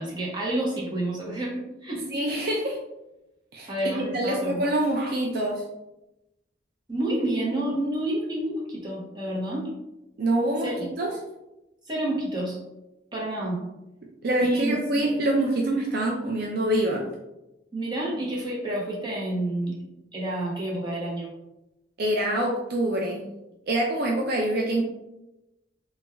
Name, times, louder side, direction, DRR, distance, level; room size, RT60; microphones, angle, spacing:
voice 1, 0.0-2.1 3.7-4.6 6.9-9.7 10.6-10.7 11.9-12.6 13.1-13.6 14.4-15.0 17.7-19.8 20.1-21.3, right 1 dB, 25° right, -4 dB, 0.9 m, -29 dB
voice 2, 2.1-2.8 3.5-5.6 10.2-10.7 11.0-11.1 14.2-17.0 22.0-23.2 23.7-24.8, right 1 dB, 55° right, 0 dB, 0.4 m, -25 dB
3.0 x 2.2 x 3.4 m, 0.94 s
head